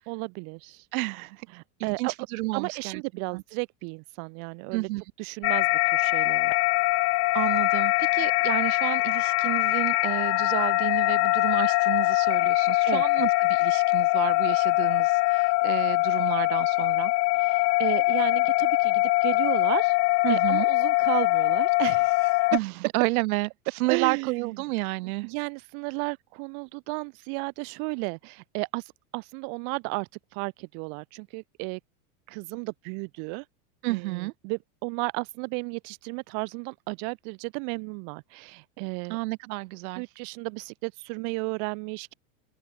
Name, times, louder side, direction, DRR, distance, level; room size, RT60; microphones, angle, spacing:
voice 1, 0.1-0.9 1.5-2.1 2.5-4.9 5.2-6.5 12.9-13.0 17.4-20.0 20.3-22.5 23.9-24.5 25.2-31.8 32.3-33.4 33.9-39.2 40.0-42.1, right 40 dB or more, 45° right, 0.5 m, -34 dB
voice 2, 0.9-1.5 1.8-3.0 3.3-3.4 4.7-5.0 7.3-17.1 20.2-20.7 22.5-23.5 23.8-25.3 33.8-34.3 39.1-40.0, right 22 dB, 70° right, 1.2 m, -31 dB
sound 1, 5.4-22.6, left 25 dB, 35° left, 0.5 m, -23 dB
open air
supercardioid pair, 135°, 45 cm